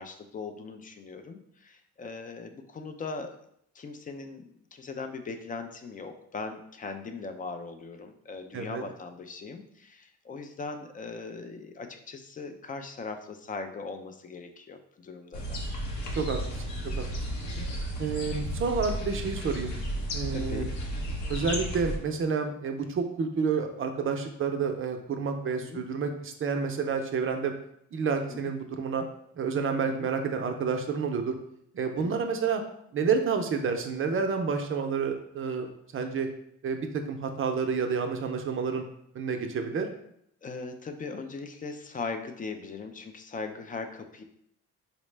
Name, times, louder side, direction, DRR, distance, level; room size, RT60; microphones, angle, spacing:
voice 1, 0.0-3.3 3.7-15.6 17.5-17.7 20.3-20.7 25.6-25.8 28.3-28.4 29.9-30.1 32.0-32.2 40.4-44.2, left 4 dB, 30° left, 7 dB, 0.4 m, -39 dB
sound 1, 15.3-22.0, equal, 70° left, 0.8 m, -33 dB
voice 2, 16.1-16.6 17.0-17.1 18.0-19.8 20.1-20.7 21.3-27.5 27.9-29.0 29.4-31.3 31.7-32.6 32.9-36.3 36.6-38.8 39.1-39.9, right 5 dB, 45° right, 5 dB, 0.5 m, -29 dB
4.0 x 2.0 x 3.2 m, 0.72 s
cardioid pair, 90°, 30 cm